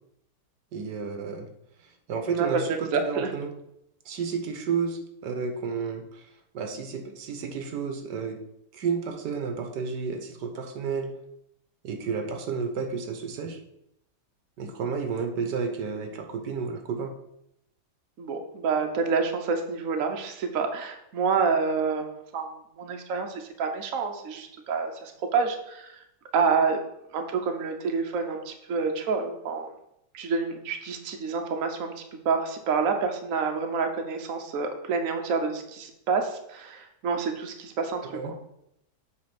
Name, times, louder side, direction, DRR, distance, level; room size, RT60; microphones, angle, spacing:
voice 1, 0.7-1.5 2.1-3.6 4.0-6.2 6.5-8.4 8.7-11.1 11.8-13.6 14.6-17.1 38.1-38.3, right 5 dB, 80° right, 6 dB, 1.5 m, -31 dB
voice 2, 2.3-3.3 18.2-22.5 22.8-26.0 26.3-26.8 27.1-29.7 30.1-31.9 32.2-38.4, right 5 dB, 55° right, 4 dB, 1.2 m, -28 dB
7.8 x 3.5 x 5.9 m, 0.79 s
omnidirectional pair, 1.8 m